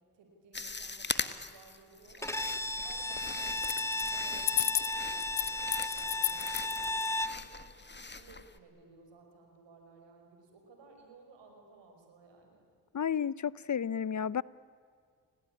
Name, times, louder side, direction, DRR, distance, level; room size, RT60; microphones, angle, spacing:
voice 1, 0.1-2.5 2.8-3.7 4.1-6.8 7.2-12.7, right 4 dB, 85° right, 3 dB, 5.7 m, -57 dB
sound 1, 0.5-8.6, left 3 dB, 25° left, 1.8 m, -42 dB
Bowed string instrument, 2.2-7.4, left 2 dB, 5° left, 1.1 m, -34 dB
sound 2, 3.6-4.1 4.4-7.1, left 13 dB, 80° left, 1.1 m, -32 dB
voice 2, 12.9-14.4, left 8 dB, 45° left, 21 dB, 0.8 m, -32 dB
29.5 x 18.5 x 9.9 m, 2.1 s
cardioid pair, 55°, 42 cm